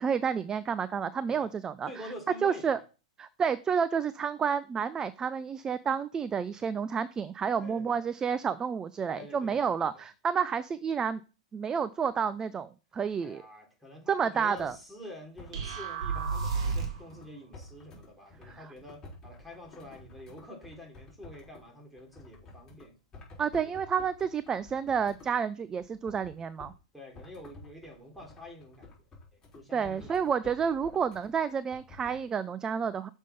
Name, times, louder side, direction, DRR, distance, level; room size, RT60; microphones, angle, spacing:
voice 1, 0.0-1.9 2.4-2.8 3.2-11.2 11.5-13.4 14.1-14.7 18.4-18.6 23.4-26.7 29.7-33.1, right 6 dB, 20° right, 16 dB, 0.4 m, -30 dB
voice 2, 1.9-2.8 7.6-8.0 9.1-10.1 13.2-23.0 23.6-23.7 26.9-28.9 29.3-30.4 30.9-31.0, left 1 dB, ahead, 1 dB, 3.4 m, -47 dB
sound 1, 14.6-14.8 15.4-16.5 16.8-21.6 22.0-22.9 23.1-25.3 25.8-26.7 27.1-32.2, left 2 dB, 20° left, 4.5 m, -51 dB
sound 2, 15.5-17.1, right 5 dB, 70° right, 3.0 m, -31 dB
6.7 x 5.3 x 5.3 m, 0.34 s
hypercardioid pair, 120°, 3 cm